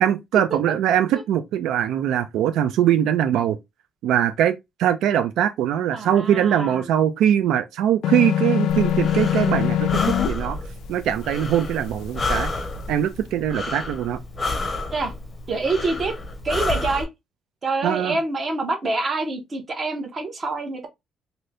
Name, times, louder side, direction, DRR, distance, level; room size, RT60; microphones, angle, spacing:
voice 1, 0.0-3.6 4.0-10.6 10.9-12.5 12.9-14.2 17.8-18.2, right 10 dB, 85° right, 0.3 m, -22 dB
voice 2, 5.9-6.8 14.9-15.1 15.5-16.1 16.4-17.1 17.6-20.9, right 3 dB, 30° right, 0.8 m, -26 dB
sound 1, 8.0-10.3, left 11 dB, 75° left, 0.3 m, -22 dB
Breathing, 8.7-17.0, left 2 dB, 20° left, 0.7 m, -30 dB
2.7 x 2.6 x 3.2 m
cardioid pair, 160°, 0 cm